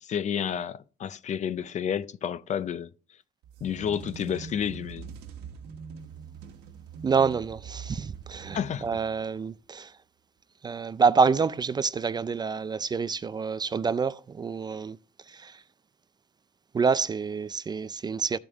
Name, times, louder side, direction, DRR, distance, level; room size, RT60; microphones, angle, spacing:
voice 1, 0.0-2.9 3.6-5.1 8.5-8.9, left 8 dB, 45° left, 0.6 m, -30 dB
sound 1, 3.4-9.4, right 6 dB, 85° right, 1.4 m, -43 dB
voice 2, 7.0-9.9 10.6-15.0 15.3-15.6 16.7-18.4, right 5 dB, 25° right, 0.4 m, -27 dB
14.0 x 5.2 x 3.5 m
cardioid pair, 110°, 17 cm